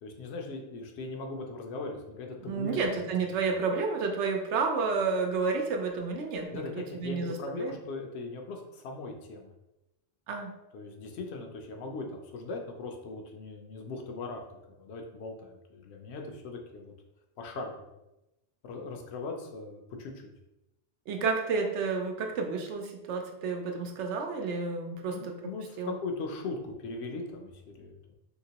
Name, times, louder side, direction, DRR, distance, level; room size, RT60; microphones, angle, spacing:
voice 1, 0.0-3.3 6.5-9.5 10.7-16.9 17.4-18.0 18.6-20.3 24.9-28.0, left 3 dB, 70° left, 2 dB, 0.8 m, -39 dB
voice 2, 2.4-6.6 7.0-7.8 10.3-10.5 21.1-25.3 25.8-26.0, right 4 dB, 80° right, 3 dB, 0.9 m, -30 dB
2.9 x 2.9 x 2.8 m, 0.94 s
omnidirectional pair, 1.2 m